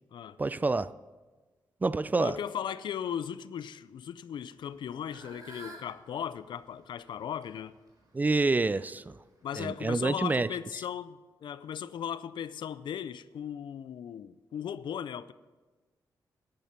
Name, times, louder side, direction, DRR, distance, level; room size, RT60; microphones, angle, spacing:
voice 1, 0.4-0.9 1.8-2.4 8.1-9.2 9.5-10.5, right 3 dB, 20° right, 0.3 m, -27 dB
voice 2, 2.2-7.8 9.4-15.3, left 9 dB, 80° left, 0.5 m, -37 dB
Fowl / Bird, 4.5-9.8, right 1 dB, 50° right, 4.3 m, -53 dB
10.5 x 10.5 x 5.8 m
wide cardioid pair, 115°, 8 cm